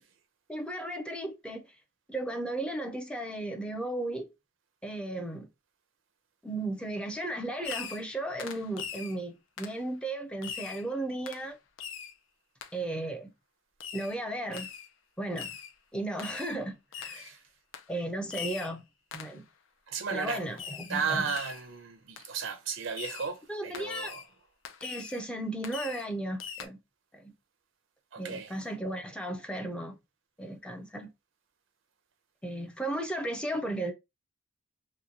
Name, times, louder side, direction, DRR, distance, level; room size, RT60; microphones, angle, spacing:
voice 1, 0.5-1.6 2.1-4.3 4.8-5.5 6.4-11.6 12.7-13.3 13.9-14.7 15.2-15.5 15.9-17.2 17.9-18.8 19.1-19.5 20.1-21.3 23.5-24.1 24.8-26.8 27.1-27.3 28.2-30.0 30.4-31.1 32.4-33.9, right 1 dB, 5° left, 0.5 m, -35 dB
Fireworks, 7.6-8.1 8.4-9.2 9.6-9.8 10.4-10.8 11.3-11.5 11.8-12.1 12.6-12.7 13.8-14.2 14.5-14.9 15.4-15.7 16.2-16.6 16.9-17.3 17.7-17.9 18.3-18.7 19.1-19.4 20.6-21.0 21.3-21.7 22.2-22.3 22.9-23.3 23.7-24.3 24.6-25.2 25.6-26.1 26.4-26.7, left 7 dB, 75° left, 0.5 m, -41 dB
voice 2, 19.9-20.4 20.9-24.3 28.1-28.6, right 5 dB, 70° right, 0.6 m, -34 dB
3.0 x 2.2 x 2.4 m
head